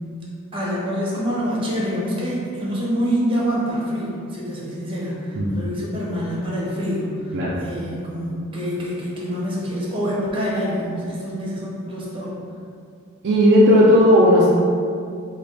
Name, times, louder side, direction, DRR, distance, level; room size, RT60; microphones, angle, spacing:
voice 1, 0.5-7.3 7.6-12.3, equal, 25° right, -6 dB, 0.8 m, -26 dB
voice 2, 13.2-14.5, equal, 50° right, -5 dB, 0.4 m, -14 dB
3.3 x 2.2 x 4.0 m, 2.3 s
head